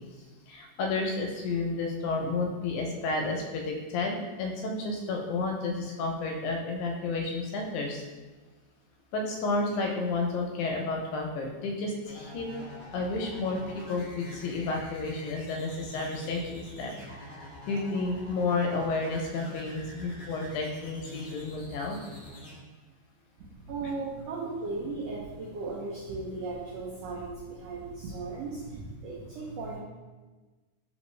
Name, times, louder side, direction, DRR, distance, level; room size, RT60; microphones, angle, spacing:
voice 1, 0.5-8.0 9.1-12.5 12.9-16.9 17.2-22.0, left 3 dB, 80° left, 1 dB, 1.8 m, -31 dB
sound 1, 12.0-22.5, left 1 dB, 65° left, 0.5 m, -46 dB
voice 2, 23.5-29.8, right 3 dB, 90° right, -5 dB, 1.4 m, -36 dB
4.3 x 3.5 x 3.1 m, 1.3 s
omnidirectional pair, 3.7 m